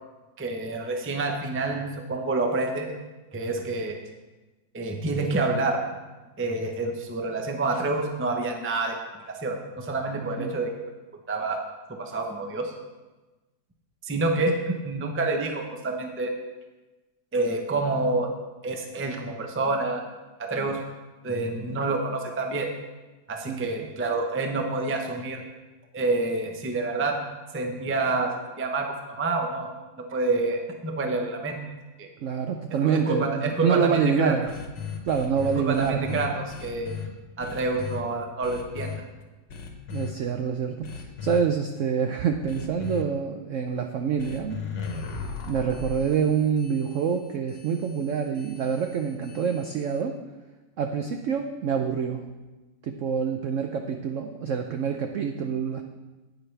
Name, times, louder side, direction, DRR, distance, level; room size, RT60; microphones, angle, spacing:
voice 1, 0.4-2.9 3.3-4.0 4.7-5.8 6.4-9.0 9.4-10.7 11.3-11.6 12.0-12.7 14.0-16.3 17.3-18.3 18.6-20.0 20.4-20.8 21.2-22.7 23.3-25.4 25.9-27.2 27.5-29.7 30.0-31.6 32.0-32.1 32.8-34.3 35.6-36.9 37.4-38.9, right 3 dB, 20° right, 3 dB, 0.3 m, -28 dB
voice 2, 32.2-34.5 35.1-36.2 39.9-44.6 45.5-50.2 50.8-52.2 52.8-55.8, right 7 dB, 75° right, 5 dB, 0.7 m, -26 dB
sound 1, 34.5-37.1 37.4-38.0 38.4-39.0 39.5-40.1 40.8-41.4 42.5-43.0 44.2-50.0, left 6 dB, 75° left, 1.7 m, -37 dB
10.0 x 9.3 x 3.3 m, 1.2 s
omnidirectional pair, 2.0 m